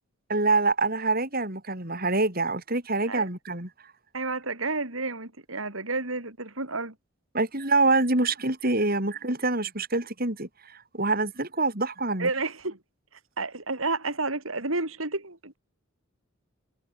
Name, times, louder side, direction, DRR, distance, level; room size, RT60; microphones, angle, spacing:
voice 1, 0.3-3.7 7.3-12.3, right 3 dB, 45° right, 5.7 m, -26 dB
voice 2, 4.1-6.9 12.2-12.8 13.4-15.6, right 3 dB, 80° right, 5.0 m, -30 dB
head